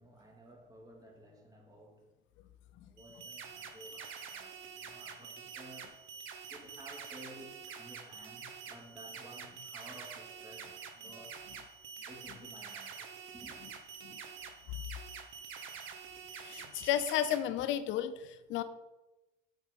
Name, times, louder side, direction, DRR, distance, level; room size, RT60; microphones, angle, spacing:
voice 1, 0.0-2.1 2.8-5.9 6.5-11.4 12.0-13.6, right 1 dB, 20° right, 0 dB, 2.3 m, -54 dB
sound 1, 3.0-17.4, right 6 dB, 70° right, 1.2 m, -47 dB
voice 2, 16.4-18.6, left 11 dB, 70° left, 12 dB, 0.7 m, -33 dB
6.9 x 6.3 x 5.3 m, 1.0 s
cardioid pair, 110°, 20 cm